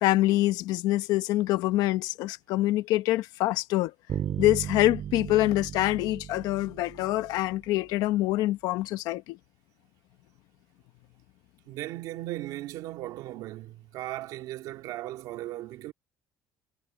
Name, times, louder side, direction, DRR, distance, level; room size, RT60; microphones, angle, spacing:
voice 1, 0.0-3.9 4.4-9.4, left 16 dB, 70° left, 0.9 m, -25 dB
sound 1, 4.1-7.8, right 10 dB, 40° right, 2.5 m, -36 dB
voice 2, 11.7-15.9, right 15 dB, 65° right, 2.3 m, -37 dB
cardioid pair, 175°, 7 cm